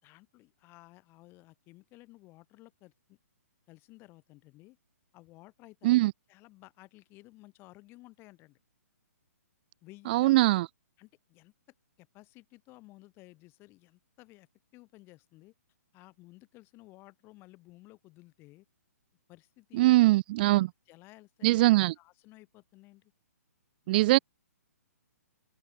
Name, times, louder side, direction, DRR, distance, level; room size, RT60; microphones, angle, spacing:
voice 1, 0.0-3.2 3.7-4.8 5.1-6.0 6.3-8.6 9.8-10.3 11.0-11.5 12.0-14.5 14.7-15.5 15.9-18.7 19.3-20.0 20.5-23.1 23.8-24.2, left 20 dB, 25° left, 3.8 m, -55 dB
voice 2, 10.1-10.6 19.8-20.7 21.4-21.9 23.9-24.2, right 18 dB, 35° right, 0.4 m, -22 dB
figure-of-eight pair, 130°, 9 cm